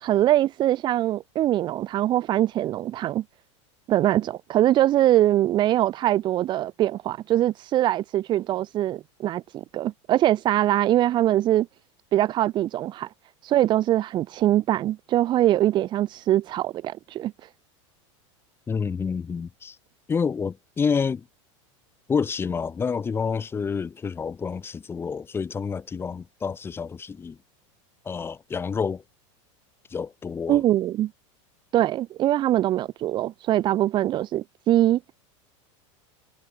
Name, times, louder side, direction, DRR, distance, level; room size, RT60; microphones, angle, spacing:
voice 1, 0.0-3.2 3.9-11.7 12.1-13.1 13.4-17.3 30.5-31.1 31.7-35.0, right 13 dB, 30° right, 0.9 m, -22 dB
voice 2, 18.7-19.8 20.1-21.2 22.1-27.4 28.0-29.0 29.9-30.6, left 6 dB, 15° left, 1.3 m, -28 dB
supercardioid pair, 155°, 16 cm